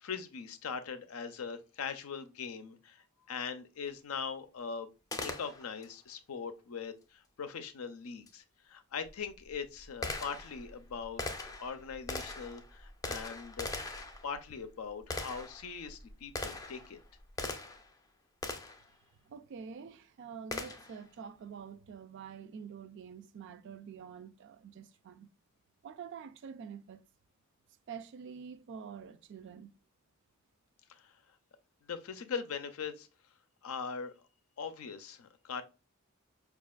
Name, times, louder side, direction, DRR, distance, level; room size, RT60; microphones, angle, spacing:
voice 1, 0.0-4.9 5.2-13.8 14.2-17.0 30.9-31.1 31.9-33.1 33.6-34.1 34.6-35.6, left 6 dB, 85° left, 0.5 m, -41 dB
Gunshot gunfire, 5.1-5.9 8.3-8.4 9.1-17.9 18.4-18.9 20.5-21.0, left 2 dB, 15° left, 0.4 m, -41 dB
voice 2, 19.3-25.3 25.8-27.0 27.9-29.7, right 6 dB, 55° right, 0.3 m, -47 dB
5.0 x 2.4 x 2.3 m
head